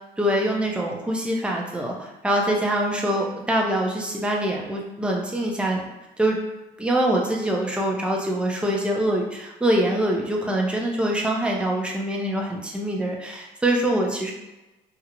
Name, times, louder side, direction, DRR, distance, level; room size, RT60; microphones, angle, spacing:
voice 1, 0.2-5.8 6.2-6.4 6.8-14.3, right 1 dB, 5° right, -1 dB, 0.5 m, -24 dB
2.4 x 2.0 x 2.9 m, 1.0 s
cardioid pair, 110°, 17 cm